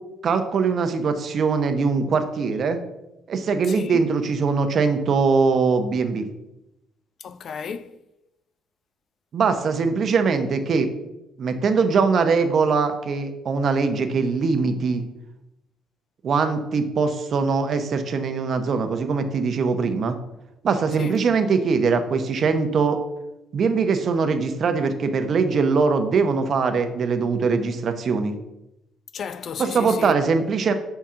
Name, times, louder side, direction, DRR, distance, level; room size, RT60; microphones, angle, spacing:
voice 1, 0.2-2.8 3.3-6.3 9.3-10.9 11.4-15.1 16.2-20.2 20.6-23.0 23.5-28.3 29.6-30.7, right 5 dB, 45° right, 0.7 m, -22 dB
voice 2, 3.7-4.0 7.2-8.0 21.0-21.2 29.1-30.2, left 6 dB, 50° left, 0.3 m, -34 dB
5.8 x 3.7 x 5.6 m
cardioid pair, 125°, 0 cm